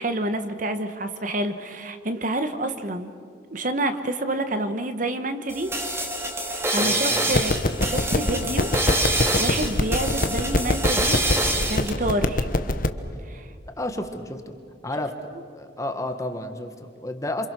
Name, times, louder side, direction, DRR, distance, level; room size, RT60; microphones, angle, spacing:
voice 1, 0.0-3.1 3.5-5.7 6.4-7.5 7.8-8.7 9.1-11.2 11.7-12.5 13.3-13.5, right 1 dB, 45° right, 9 dB, 1.3 m, -28 dB
sound 1, 5.5-11.9, right 1 dB, 15° right, 2.3 m, -26 dB
voice 2, 6.8-7.4 13.8-14.5 14.8-15.1 15.5-17.5, left 1 dB, 15° left, 6 dB, 1.6 m, -31 dB
sound 2, 7.3-12.9, left 2 dB, 45° left, 1.1 m, -24 dB
28.0 x 26.0 x 6.3 m, 2.5 s
head